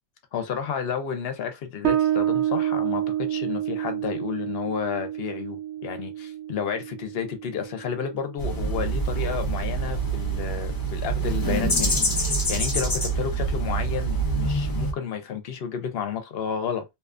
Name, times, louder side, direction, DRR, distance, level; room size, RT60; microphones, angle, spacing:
voice 1, 0.3-16.8, left 7 dB, 60° left, 0.7 m, -31 dB
Bass guitar, 1.8-9.0, right 12 dB, 65° right, 0.8 m, -29 dB
sound 1, 8.4-14.9, right 3 dB, 30° left, 0.4 m, -26 dB
2.6 x 2.3 x 2.3 m
omnidirectional pair, 1.3 m